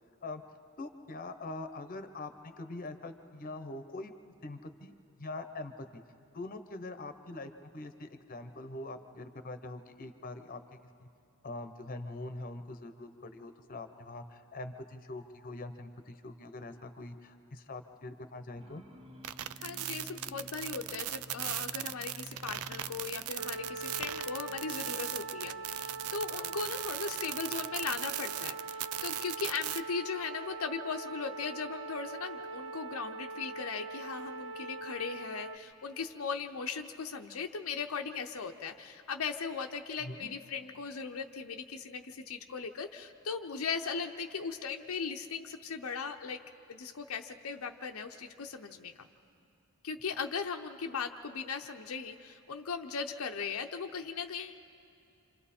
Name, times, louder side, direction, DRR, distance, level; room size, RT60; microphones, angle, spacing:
voice 1, 0.8-4.1 4.4-6.0 6.3-10.6 11.0-11.1 11.4-18.8 24.1-24.3 26.3-26.5 40.0-40.2, left 2 dB, 40° left, 9 dB, 1.0 m, -43 dB
sound 1, 18.6-28.2, equal, 25° right, 1.1 m, -54 dB
sound 2, 19.2-29.8, right 12 dB, 90° right, 0.5 m, -38 dB
voice 2, 19.6-46.4 46.7-49.1 49.8-54.6, left 5 dB, 75° left, 4 dB, 0.7 m, -38 dB
sound 3, 23.4-35.6, right 3 dB, 70° right, 1.2 m, -42 dB
27.5 x 27.0 x 4.3 m, 2.5 s
head